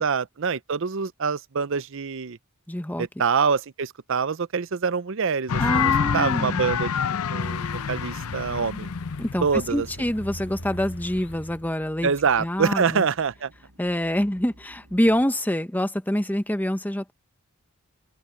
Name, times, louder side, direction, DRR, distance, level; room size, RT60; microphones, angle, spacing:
voice 1, 0.0-2.4 3.0-6.9 7.3-8.9 9.4-9.9 12.0-13.5, right 5 dB, 60° right, 0.6 m, -25 dB
voice 2, 2.7-3.1 5.6-6.7 9.2-9.4 9.7-12.1 12.4-13.0 13.8-17.1, equal, 10° left, 0.9 m, -26 dB
sound 1, 5.5-10.4, left 7 dB, 85° left, 0.6 m, -27 dB
sound 2, 7.4-11.7, equal, 55° left, 7.5 m, -40 dB
sound 3, 8.1-15.2, equal, 80° right, 7.7 m, -53 dB
head